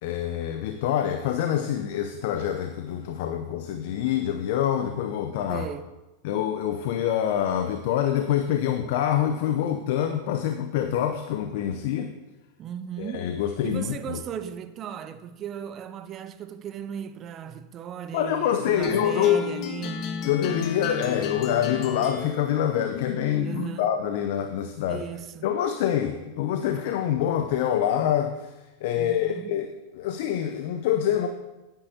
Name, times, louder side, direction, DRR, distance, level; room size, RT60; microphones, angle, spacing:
voice 1, 0.0-5.7 6.2-12.1 13.0-14.2 18.1-19.5 20.2-25.1 25.4-28.5 28.8-31.3, left 10 dB, 65° left, 0.5 m, -26 dB
voice 2, 5.5-5.9 12.6-13.3 13.6-20.1 23.4-23.9 24.9-25.5 29.0-29.6, right 8 dB, 35° right, 0.5 m, -37 dB
sound 1, 18.8-23.9, left 7 dB, 50° left, 0.9 m, -34 dB
9.6 x 8.8 x 2.8 m
hypercardioid pair, 115°, 0 cm